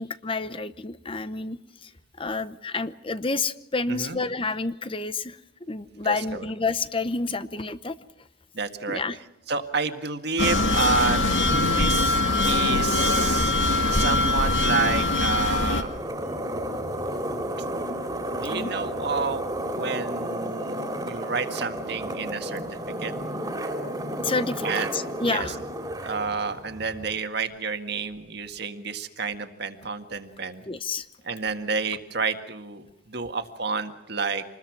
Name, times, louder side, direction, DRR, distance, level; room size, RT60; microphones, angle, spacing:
voice 1, 0.0-1.9 2.2-5.4 5.7-8.0 8.9-9.2 18.5-18.7 24.2-25.6 30.7-31.0, left 3 dB, 25° left, 12 dB, 0.8 m, -29 dB
voice 2, 3.9-4.2 6.0-6.5 8.5-9.0 9.5-11.2 11.6-12.2 12.5-13.5 13.9-16.0 18.3-19.4 19.7-22.6 23.0-23.1 24.6-24.9 25.2-25.5 26.0-30.6 31.2-34.4, right 4 dB, 55° right, 7 dB, 1.8 m, -29 dB
sound 1, 10.4-15.8, left 2 dB, 70° left, 2.1 m, -22 dB
sound 2, 15.6-27.2, right 1 dB, 20° right, 2.6 m, -32 dB
27.0 x 20.5 x 6.0 m, 0.89 s
head